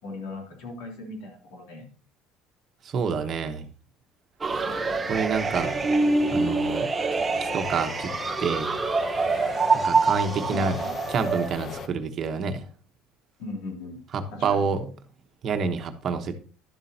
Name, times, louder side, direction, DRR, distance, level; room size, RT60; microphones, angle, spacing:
voice 1, 0.0-1.9 4.7-5.0 10.5-10.9 13.4-14.0 14.3-14.7, left 2 dB, 85° left, 2 dB, 3.0 m, -38 dB
voice 2, 2.8-3.7 5.1-5.8 6.3-6.9 7.4-8.1 8.4-8.7 9.7-10.8 11.1-12.6 14.1-14.8 15.4-16.4, right 5 dB, 40° right, 6 dB, 1.1 m, -28 dB
sound 1, 4.4-11.5, right 4 dB, 20° right, 0.7 m, -25 dB
sound 2, 4.5-11.9, left 5 dB, 40° left, 0.8 m, -38 dB
11.5 x 7.5 x 2.9 m, 0.39 s
cardioid pair, 135°, 0 cm